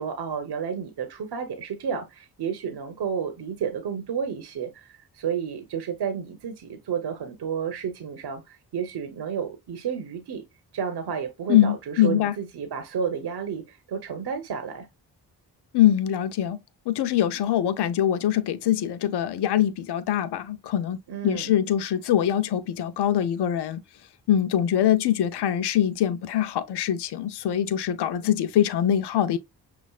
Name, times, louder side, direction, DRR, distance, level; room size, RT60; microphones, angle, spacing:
voice 1, 0.0-10.4 10.7-14.9 21.1-21.5, right 7 dB, 75° right, 1.0 m, -31 dB
voice 2, 11.5-12.3 15.7-16.6 16.9-23.8 24.3-29.4, left 11 dB, 85° left, 0.6 m, -23 dB
5.9 x 2.5 x 2.3 m
cardioid pair, 50°, 39 cm